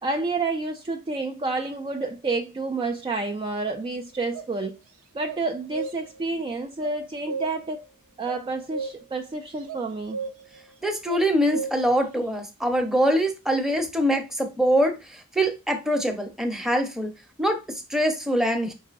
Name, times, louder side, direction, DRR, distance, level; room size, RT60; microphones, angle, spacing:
voice 1, 0.0-4.8 5.1-7.9 8.2-10.2, right 3 dB, 20° right, 0.3 m, -29 dB
sound 1, 3.6-3.8 4.3-4.4 5.2-6.2 6.8-7.8 8.2-9.3 9.6-10.6 11.1-12.0, right 4 dB, 80° right, 0.7 m, -35 dB
voice 2, 10.8-15.0 15.3-17.1 17.4-18.7, equal, ahead, 0.7 m, -23 dB
5.4 x 3.7 x 2.5 m
head